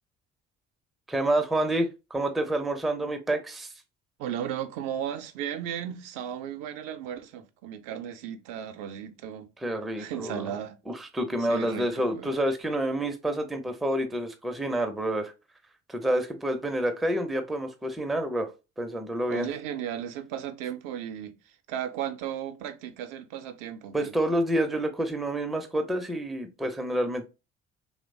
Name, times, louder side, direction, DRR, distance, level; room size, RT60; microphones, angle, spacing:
voice 1, 1.1-3.7 9.6-10.5 10.9-15.3 15.9-18.5 18.8-19.5 23.9-27.3, right 1 dB, ahead, 0.4 m, -28 dB
voice 2, 4.2-9.5 10.0-10.8 11.5-12.3 19.3-24.1, right 9 dB, 60° right, 0.5 m, -35 dB
2.9 x 2.1 x 2.5 m
figure-of-eight pair, 45°, 36 cm